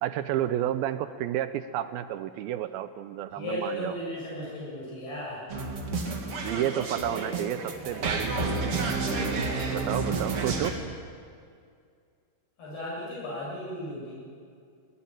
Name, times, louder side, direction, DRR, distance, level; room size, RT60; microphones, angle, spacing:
voice 1, 0.0-4.0 6.4-8.8 9.7-10.8, right 12 dB, 80° right, 12 dB, 2.4 m, -31 dB
voice 2, 3.3-5.4 6.5-6.8 7.1-7.3 7.9-8.1 12.6-14.1, left 1 dB, 80° left, -7 dB, 10.0 m, -36 dB
sound 1, 5.5-10.7, right 3 dB, 40° right, 2.8 m, -30 dB
23.5 x 18.5 x 9.0 m, 2.2 s
omnidirectional pair, 4.5 m